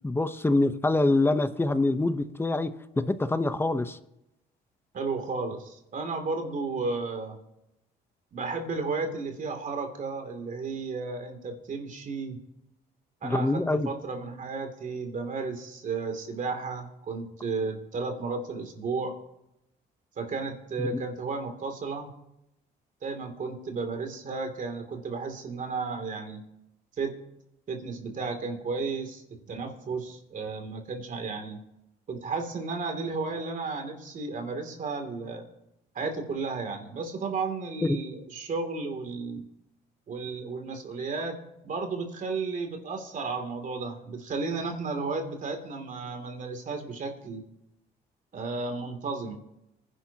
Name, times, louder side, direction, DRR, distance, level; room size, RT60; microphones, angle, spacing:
voice 1, 0.0-2.7 3.1-4.0 13.2-13.9 20.8-20.9, left 2 dB, 10° left, 10 dB, 0.9 m, -25 dB
voice 2, 4.9-7.4 8.3-12.4 13.2-19.2 20.2-22.1 23.0-26.4 27.0-27.1 27.7-29.2 29.5-31.6 32.1-35.4 35.9-39.4 40.1-47.4 48.3-49.3, right 4 dB, 45° right, 5 dB, 2.8 m, -33 dB
25.5 x 11.0 x 2.9 m, 0.85 s
cardioid pair, 105°, 18 cm